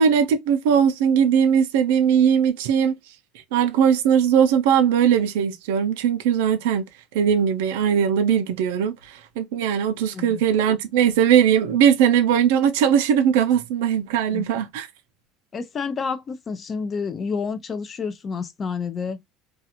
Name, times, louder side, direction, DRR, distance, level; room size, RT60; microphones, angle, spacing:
voice 1, 0.0-3.0 3.5-6.9 7.1-14.9, right 8 dB, 85° right, 0.5 m, -19 dB
voice 2, 14.3-14.7 15.5-19.2, left 5 dB, 30° left, 0.5 m, -29 dB
2.4 x 2.3 x 2.8 m
supercardioid pair, 130°, 0 cm